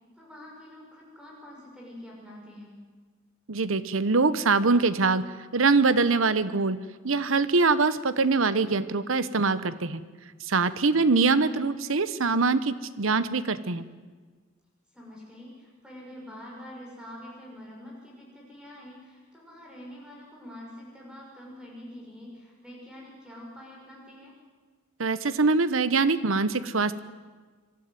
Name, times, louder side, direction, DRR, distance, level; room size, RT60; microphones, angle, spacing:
voice 1, 0.1-2.7 10.8-11.4 14.9-24.3, left 1 dB, 5° right, -3 dB, 6.3 m, -46 dB
voice 2, 3.5-5.3 5.5-6.8 7.0-10.0 10.5-13.8 25.0-27.0, right 4 dB, 80° right, 14 dB, 1.0 m, -23 dB
24.0 x 12.5 x 9.7 m, 1.4 s
head